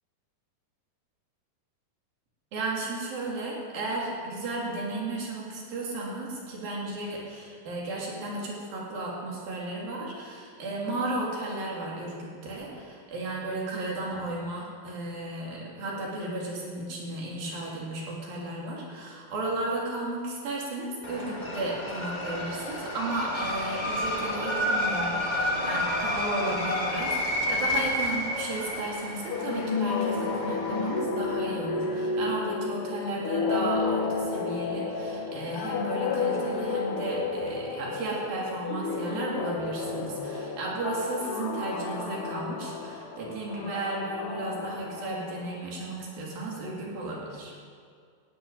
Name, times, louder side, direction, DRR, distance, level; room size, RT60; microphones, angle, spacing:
voice 1, 2.5-47.5, right 2 dB, 75° right, -3 dB, 4.7 m, -34 dB
sound 1, 21.0-31.0, left 1 dB, 25° left, 1.0 m, -30 dB
sound 2, 29.3-45.7, left 4 dB, 55° left, 1.6 m, -31 dB
15.0 x 8.2 x 9.6 m, 2.1 s
omnidirectional pair, 4.1 m